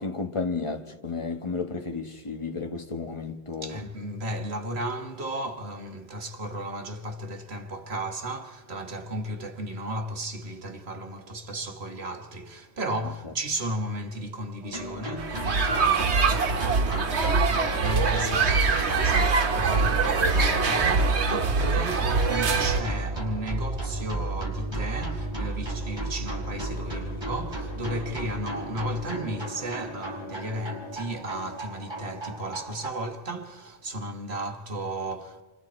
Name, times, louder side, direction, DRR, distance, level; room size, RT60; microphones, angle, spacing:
voice 1, 0.0-3.8 21.8-21.9, left 4 dB, 30° left, 1.3 m, -32 dB
voice 2, 3.6-35.4, right 1 dB, 70° right, 1.7 m, -34 dB
sound 1, 14.6-32.9, right 1 dB, 25° right, 5.5 m, -35 dB
sound 2, 15.2-22.8, right 4 dB, 90° right, 1.4 m, -23 dB
29.5 x 25.5 x 4.3 m
omnidirectional pair, 1.1 m